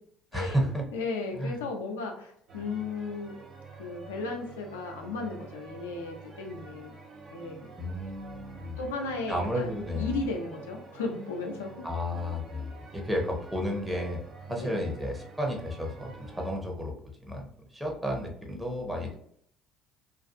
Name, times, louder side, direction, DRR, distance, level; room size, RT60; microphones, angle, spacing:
voice 1, 0.3-0.9 1.3-1.6 7.8-8.8 9.3-10.2 11.8-14.2 14.5-16.9 17.2-17.5 17.7-19.2, equal, 10° right, 0 dB, 0.8 m, -32 dB
voice 2, 0.9-3.3 3.8-6.9 7.3-7.8 8.8-11.7 14.5-14.8, left 3 dB, 85° left, 1 dB, 0.4 m, -35 dB
sound 1, 2.5-16.5, right 4 dB, 45° right, 0.7 m, -48 dB
2.5 x 2.3 x 2.5 m, 0.67 s
hypercardioid pair, 60°, 0 cm